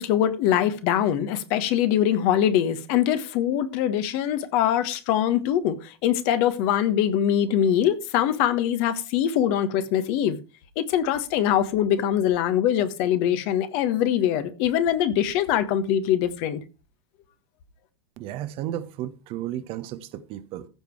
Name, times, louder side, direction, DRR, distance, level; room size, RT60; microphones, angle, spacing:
voice 1, 0.0-10.4 10.8-16.6, left 10 dB, 50° left, 1.3 m, -23 dB
voice 2, 18.2-20.7, right 12 dB, 45° right, 1.0 m, -33 dB
15.0 x 5.2 x 4.7 m
figure-of-eight pair, 85°, 14 cm